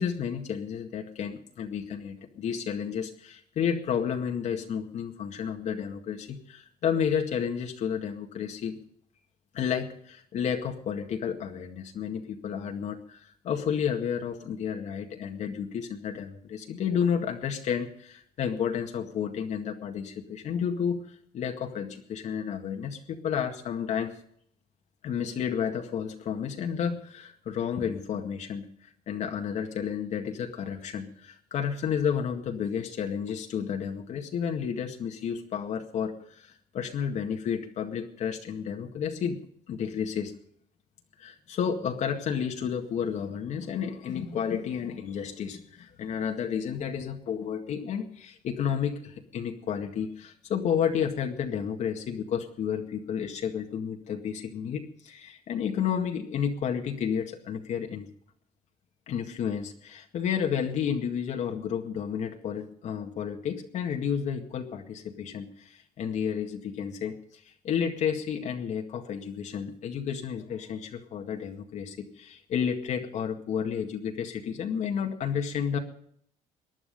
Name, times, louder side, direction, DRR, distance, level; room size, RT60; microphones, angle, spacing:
voice 1, 0.0-8.8 9.5-24.2 25.0-40.3 41.2-58.1 59.1-75.8, left 7 dB, 55° left, 3 dB, 2.0 m, -31 dB
19.5 x 11.0 x 5.4 m, 0.65 s
cardioid pair, 120°, 14 cm